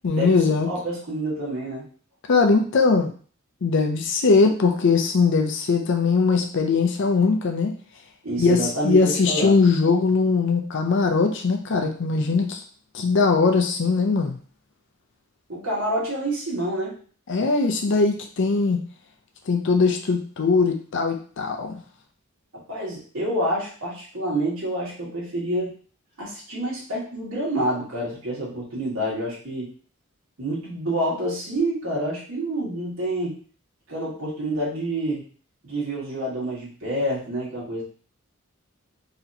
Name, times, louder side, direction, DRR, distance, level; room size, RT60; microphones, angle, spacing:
voice 1, 0.0-0.7 2.3-3.1 3.6-7.7 8.4-12.6 12.9-14.4 17.3-18.8 19.5-21.7, left 4 dB, 60° left, 4 dB, 0.5 m, -20 dB
voice 2, 0.7-1.8 8.2-9.6 15.5-17.0 22.7-25.7 26.2-29.7 30.4-33.4 33.9-35.2 35.6-37.8, right 1 dB, 85° right, -6 dB, 1.8 m, -28 dB
4.1 x 2.9 x 2.7 m, 0.41 s
head